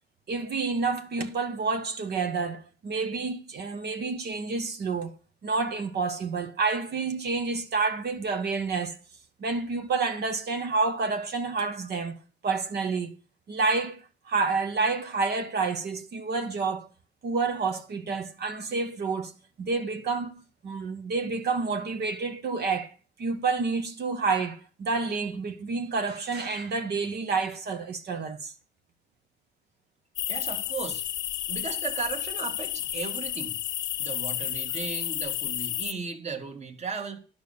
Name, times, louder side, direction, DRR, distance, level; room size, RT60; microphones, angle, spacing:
voice 1, 0.3-5.1 5.4-9.0 9.4-12.2 12.4-13.1 13.5-16.9 17.2-19.3 19.6-28.5, right 4 dB, 55° right, 1.1 m, -29 dB
sound 1, 30.2-35.9, left 13 dB, 70° left, 0.5 m, -31 dB
voice 2, 30.3-31.1 31.5-33.6 34.0-37.2, right 5 dB, 35° right, 1.8 m, -36 dB
11.5 x 5.4 x 6.9 m
cardioid pair, 90°, 20 cm